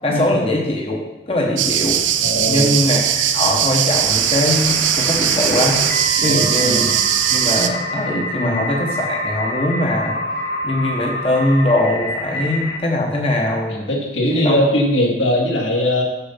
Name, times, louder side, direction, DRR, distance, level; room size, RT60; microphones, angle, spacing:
voice 1, 0.0-2.0 2.4-5.8 6.2-6.9 7.3-10.2 10.6-13.7 14.3-14.6, left 1 dB, 30° left, 0 dB, 1.0 m, -21 dB
sound 1, 1.6-7.7, right 10 dB, 90° right, 0.6 m, -19 dB
voice 2, 2.2-2.7 6.2-6.9 8.4-8.7 13.7-16.0, left 1 dB, 85° left, -1 dB, 2.3 m, -20 dB
sound 2, 3.9-12.8, left 1 dB, 55° left, 1.4 m, -27 dB
7.0 x 6.8 x 5.6 m, 1.1 s
head